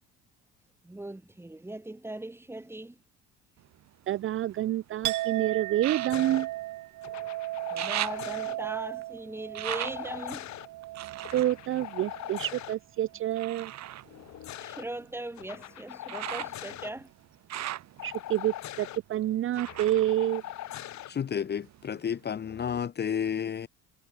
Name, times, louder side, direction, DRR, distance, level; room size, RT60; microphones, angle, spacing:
voice 1, 0.8-3.0 7.7-10.5 14.6-17.1, right 1 dB, 10° right, 5.3 m, -39 dB
sound 1, 3.6-4.9 5.8-7.3 7.5-12.7 13.3-21.2 21.5-22.3 22.8-22.9, right 13 dB, 60° right, 4.4 m, -40 dB
voice 2, 4.1-6.5 11.3-13.7 18.0-20.4, right 13 dB, 45° right, 0.6 m, -28 dB
Chink clink, 5.0-12.7 13.1-13.7, right 17 dB, 75° right, 6.0 m, -36 dB
sound 2, 6.1-6.5 7.0-8.6 9.7-10.7 11.2-12.8 14.1-14.8 15.4-16.9 18.0-19.0 19.5-21.1 22.4-22.8, left 14 dB, 65° left, 4.8 m, -41 dB
voice 3, 21.1-23.7, left 8 dB, 35° left, 1.3 m, -31 dB
cardioid pair, 125°, 31 cm